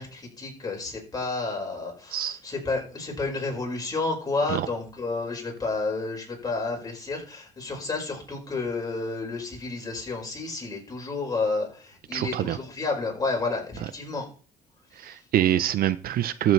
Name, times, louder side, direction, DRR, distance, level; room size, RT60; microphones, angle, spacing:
voice 1, 0.0-14.3, left 3 dB, 20° left, -1 dB, 5.2 m, -31 dB
voice 2, 12.1-12.6 15.0-16.5, right 12 dB, 60° right, 15 dB, 0.6 m, -25 dB
13.5 x 7.5 x 3.3 m, 0.38 s
cardioid pair, 110°, 17 cm